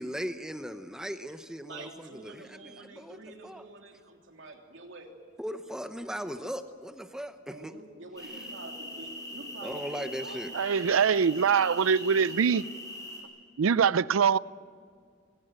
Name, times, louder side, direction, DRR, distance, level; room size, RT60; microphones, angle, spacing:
voice 1, 0.0-3.7 5.4-7.7 8.2-8.5 9.6-10.5, equal, 5° right, 0.7 m, -38 dB
voice 2, 1.6-5.1 7.5-11.5 12.1-12.7, right 2 dB, 65° right, 3.1 m, -47 dB
sound 1, 8.1-13.2, left 1 dB, 15° left, 4.6 m, -41 dB
voice 3, 10.5-12.6 13.6-14.4, right 6 dB, 85° right, 0.5 m, -23 dB
22.0 x 17.5 x 9.0 m
head